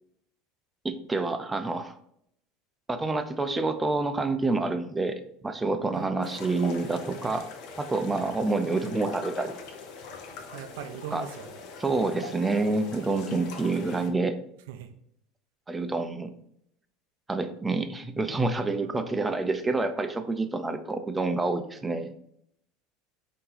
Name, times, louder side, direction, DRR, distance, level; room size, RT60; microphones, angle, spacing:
voice 1, 0.8-1.9 2.9-7.5 7.8-9.6 11.1-11.2 11.8-14.4 15.7-16.3 17.3-22.1, right 3 dB, 10° right, 8 dB, 0.4 m, -28 dB
sound 1, 6.2-14.1, left 4 dB, 60° left, 0.8 m, -42 dB
voice 2, 10.5-11.6 14.7-14.9 18.8-19.0, right 8 dB, 80° right, 7 dB, 0.4 m, -40 dB
4.4 x 2.8 x 3.9 m, 0.72 s
supercardioid pair, 135°, 0 cm